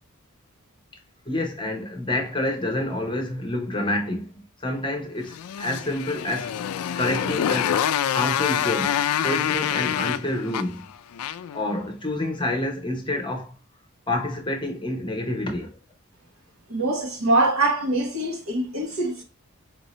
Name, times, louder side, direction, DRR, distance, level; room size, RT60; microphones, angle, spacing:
voice 1, 1.3-6.6 6.9-7.8 8.1-10.8 11.5-13.5 14.1-15.7, left 1 dB, 20° left, 0.8 m, -28 dB
Motorcycle, 5.3-11.6, left 9 dB, 80° left, 0.3 m, -26 dB
voice 2, 16.7-19.2, right 2 dB, 70° right, 1.3 m, -23 dB
4.6 x 2.7 x 3.0 m
head